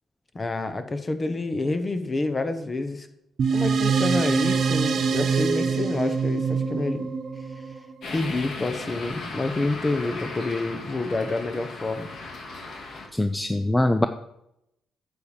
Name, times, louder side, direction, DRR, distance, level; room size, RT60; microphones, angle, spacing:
voice 1, 0.3-3.1 3.5-7.1 8.1-12.1, left 2 dB, 25° left, 9 dB, 1.1 m, -28 dB
sound 1, 3.4-8.2, right 5 dB, 60° right, 1.1 m, -24 dB
sound 2, 8.0-13.1, left 3 dB, 60° left, 2.1 m, -37 dB
voice 2, 13.1-14.1, left 1 dB, 10° left, 8 dB, 0.5 m, -22 dB
8.3 x 8.2 x 5.1 m, 0.81 s
cardioid pair, 90°, 0 cm